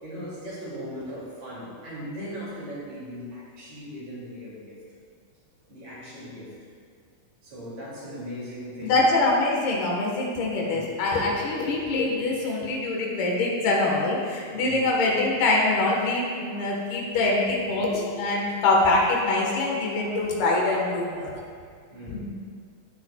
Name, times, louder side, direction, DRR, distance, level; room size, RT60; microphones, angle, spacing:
voice 1, 0.0-4.8 5.7-6.5 7.4-9.0 10.6-10.9 14.5-14.8 21.9-22.3, equal, 50° right, -7 dB, 3.4 m, -38 dB
voice 2, 8.8-21.4 22.1-22.3, left 2 dB, 75° left, -2 dB, 3.2 m, -24 dB
17.0 x 6.9 x 2.3 m, 2.1 s
omnidirectional pair, 4.6 m